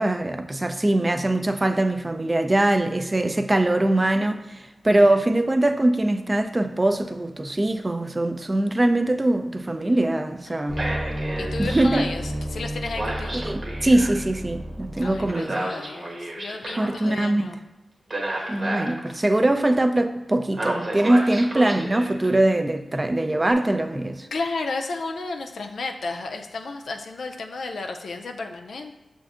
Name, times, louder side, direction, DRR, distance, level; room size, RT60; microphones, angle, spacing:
voice 1, 0.0-4.6 4.8-10.8 11.6-12.1 13.3-15.6 16.8-17.5 18.5-24.3, right 1 dB, 25° right, 0.3 m, -22 dB
voice 2, 8.4-8.8 10.5-10.9 11.4-13.4 15.0-17.6 18.3-18.7 19.1-19.2 24.3-29.0, left 3 dB, 85° left, 0.3 m, -33 dB
sound 1, 10.7-17.0 18.1-19.0 20.5-22.3 23.5-23.6, right 1 dB, 45° right, 0.9 m, -30 dB
6.3 x 2.5 x 2.4 m
cardioid pair, 65°, 0 cm